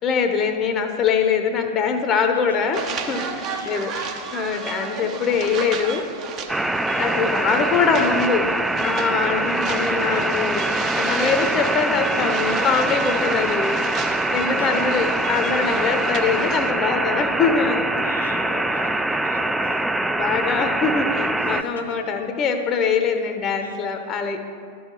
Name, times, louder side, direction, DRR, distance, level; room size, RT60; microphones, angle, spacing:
voice 1, 0.0-2.8 3.1-3.9 4.3-6.1 7.0-8.5 8.8-10.7 11.0-13.8 14.3-17.8 20.1-24.4, left 5 dB, 35° left, 6 dB, 0.6 m, -23 dB
voice 2, 2.3-2.7 3.4-4.2 6.8-7.2 9.2-9.5 10.1-10.3 11.3-11.8 13.3-13.7 14.4-15.0 18.0-19.9 21.4-22.2 23.6-23.8, left 4 dB, 80° left, 5 dB, 0.9 m, -40 dB
sound 1, 2.7-16.7, right 5 dB, 40° right, 0.7 m, -33 dB
sound 2, 6.5-21.6, right 1 dB, 5° right, 0.3 m, -23 dB
12.0 x 4.7 x 4.7 m, 2.3 s
hypercardioid pair, 95°, 0 cm